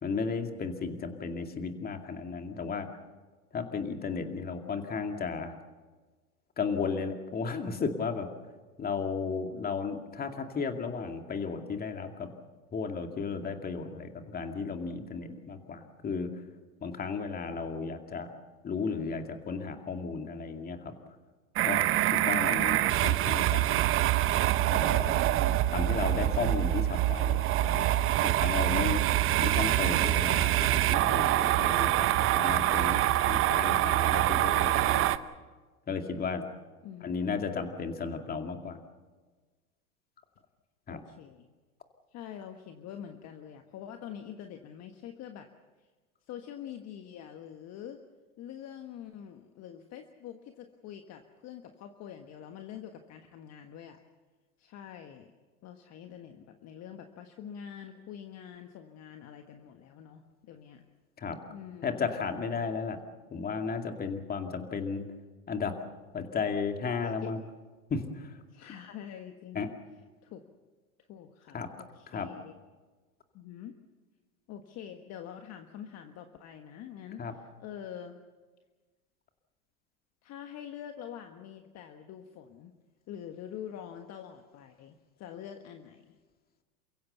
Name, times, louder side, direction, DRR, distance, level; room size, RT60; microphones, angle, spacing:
voice 1, 0.0-2.9 3.5-5.5 6.6-8.3 8.8-12.3 12.7-16.3 16.8-18.3 18.6-20.9 21.6-23.7 24.7-25.2 25.7-27.9 28.2-29.0 29.4-33.0 33.3-35.1 35.9-36.4 37.0-38.8 40.9-41.0 61.2-61.4 61.8-63.0 63.3-65.1 65.5-65.8 66.1-67.4 67.9-68.4 69.5-69.7 71.5-71.7 72.1-72.3 77.2-77.3, left 5 dB, 20° left, 5 dB, 2.3 m, -34 dB
sound 1, 21.6-35.2, right 14 dB, 30° right, 0.8 m, -25 dB
voice 2, 40.9-41.5 42.1-45.5 46.3-48.0 48.4-54.0 54.6-55.3 55.6-60.8 61.5-62.1 67.0-67.3 68.5-69.6 70.2-70.4 71.1-72.5 73.3-73.7 74.5-78.2 80.2-82.7 83.1-86.2, left 9 dB, 35° left, 6 dB, 1.5 m, -45 dB
29.0 x 16.0 x 7.0 m, 1.3 s
hypercardioid pair, 110°, 44 cm